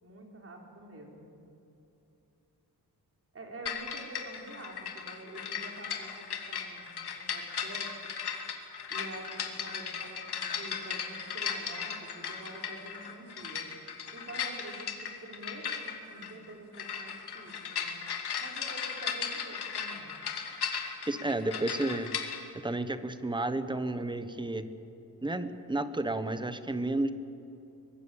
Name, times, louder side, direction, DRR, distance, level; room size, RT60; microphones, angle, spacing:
voice 1, 0.0-1.3 3.3-6.9 7.2-7.9 8.9-13.7 14.1-17.9 18.4-20.1 21.4-21.6, right 2 dB, 35° right, 1 dB, 4.2 m, -47 dB
sound 1, 3.7-22.4, left 7 dB, 75° left, 2.5 m, -37 dB
voice 2, 21.1-22.1 22.6-24.6 25.2-27.1, right 2 dB, 10° right, 11 dB, 1.0 m, -31 dB
24.0 x 20.0 x 8.6 m, 2.9 s
wide cardioid pair, 155°, 39 cm